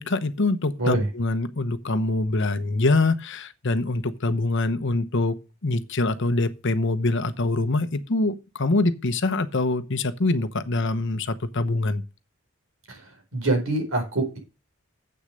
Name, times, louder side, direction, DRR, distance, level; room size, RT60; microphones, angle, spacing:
voice 1, 0.0-12.0, left 2 dB, 60° left, 0.9 m, -24 dB
voice 2, 12.9-14.4, right 2 dB, 75° right, 4.4 m, -25 dB
8.0 x 6.5 x 6.5 m
head